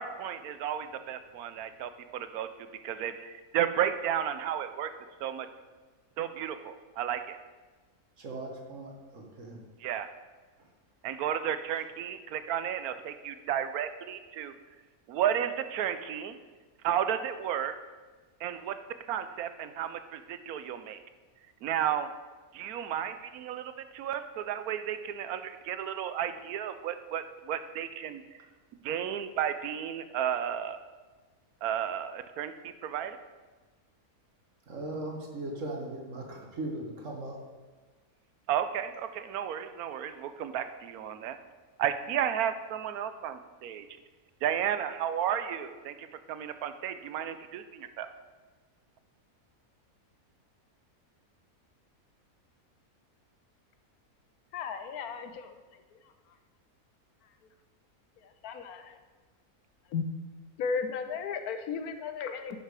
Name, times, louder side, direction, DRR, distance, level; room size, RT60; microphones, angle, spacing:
voice 1, 0.0-2.5 2.8-4.9 5.2-5.5 6.2-7.4 9.8-10.1 11.0-14.5 15.1-16.4 16.8-17.7 18.4-18.7 19.1-21.0 21.6-22.1 22.5-28.5 28.8-30.8 31.6-33.2 38.5-41.4 41.8-43.9 44.4-48.1, right 9 dB, 85° right, 10 dB, 1.1 m, -33 dB
voice 2, 8.2-9.6 34.7-37.4, right 2 dB, 55° right, 1 dB, 1.7 m, -38 dB
voice 3, 54.5-55.5 58.2-59.0 59.9-60.0 60.6-62.6, left 5 dB, 85° left, 8 dB, 1.2 m, -35 dB
10.5 x 6.1 x 4.8 m, 1.3 s
omnidirectional pair, 1.6 m